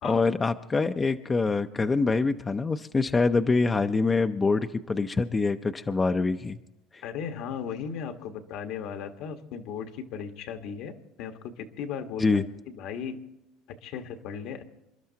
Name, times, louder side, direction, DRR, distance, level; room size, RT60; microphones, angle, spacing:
voice 1, 0.0-6.6 12.2-12.4, left 4 dB, 20° left, 7 dB, 0.5 m, -25 dB
voice 2, 7.0-12.3 12.7-13.2 13.7-14.6, left 7 dB, 65° left, 6 dB, 1.3 m, -36 dB
27.5 x 12.0 x 2.8 m, 0.92 s
supercardioid pair, 115°, 0 cm